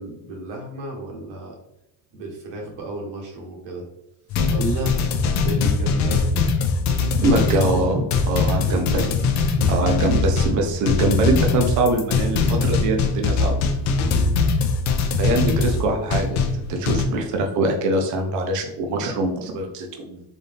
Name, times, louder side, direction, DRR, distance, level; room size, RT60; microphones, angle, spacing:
voice 1, 0.0-1.5 2.1-3.8 4.5-4.9 5.4-6.3 8.7-9.0 9.6-10.0 14.0-14.4, right 2 dB, 60° right, 0 dB, 1.4 m, -33 dB
sound 1, 4.3-17.0, left 4 dB, 40° left, 0.5 m, -21 dB
voice 2, 7.2-9.0 9.7-13.6 15.2-20.2, right 2 dB, 40° right, 3 dB, 0.7 m, -23 dB
4.1 x 2.7 x 3.4 m, 0.83 s
cardioid pair, 155°, 46 cm